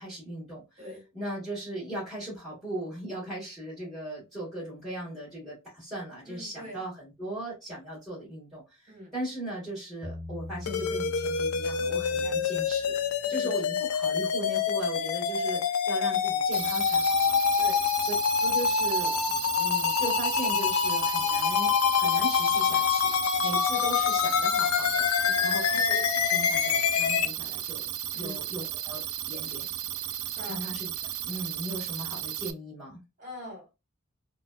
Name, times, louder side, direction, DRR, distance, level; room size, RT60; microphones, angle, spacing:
voice 1, 0.0-0.6 1.1-17.4 18.0-18.1 18.4-23.1 23.4-25.1 25.4-29.0 29.3-29.7 30.5-30.9 31.2-33.0, right 1 dB, ahead, 1.5 m, -38 dB
voice 2, 0.8-1.1 3.1-3.3 6.2-6.8 8.9-9.2 12.2-12.4 13.2-13.5 17.6-17.9 25.2-25.5 28.1-28.4 30.4-30.7 33.2-33.7, left 1 dB, 35° right, 1.8 m, -43 dB
Bass guitar, 10.0-13.4, left 2 dB, 25° left, 0.5 m, -42 dB
sound 1, 10.7-27.3, left 7 dB, 80° left, 0.4 m, -26 dB
High Freq Processing, 16.5-32.5, right 12 dB, 75° right, 0.4 m, -35 dB
3.9 x 2.2 x 2.4 m
head